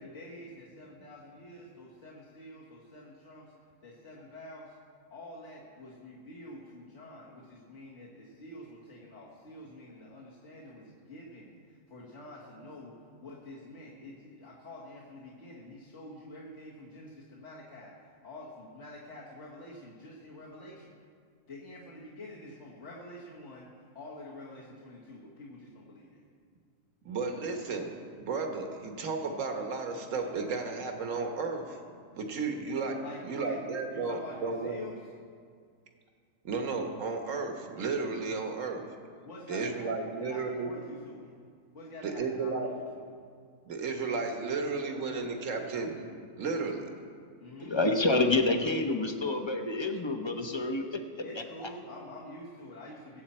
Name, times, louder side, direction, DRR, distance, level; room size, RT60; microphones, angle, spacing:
voice 1, 0.0-3.5 3.8-4.8 5.1-17.9 18.2-21.0 21.5-23.7 24.0-26.2 32.5-32.6 33.0-33.6 33.9-35.1 39.2-41.3 41.7-43.1 47.4-47.8 51.2-53.2, left 1 dB, 60° left, -5 dB, 1.9 m, -47 dB
voice 2, 27.0-31.8 32.1-34.8 36.4-38.8 39.5-40.8 42.0-42.7 43.6-46.1 46.4-46.9, right 4 dB, 70° right, 4 dB, 1.6 m, -33 dB
voice 3, 47.6-51.2, left 2 dB, 25° left, 5 dB, 0.8 m, -28 dB
22.5 x 8.6 x 4.3 m, 2.1 s
omnidirectional pair, 1.4 m